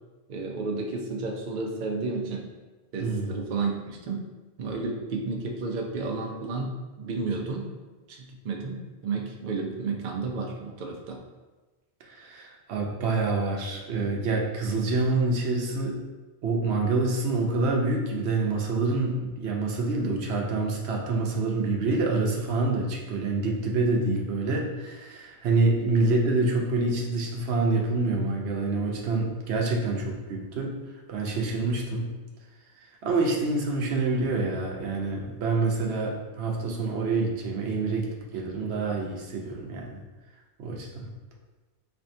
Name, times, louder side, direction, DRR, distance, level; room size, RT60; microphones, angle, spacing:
voice 1, 0.3-2.5 2.9-4.3 4.6-7.7 8.1-11.2, right 3 dB, 55° right, 0 dB, 0.6 m, -32 dB
voice 2, 3.0-3.4 12.1-16.0 16.4-30.7 31.1-32.1 33.0-40.0 40.6-41.1, right 3 dB, 80° right, 0 dB, 0.9 m, -27 dB
4.4 x 2.5 x 2.6 m, 1.2 s
omnidirectional pair, 1.1 m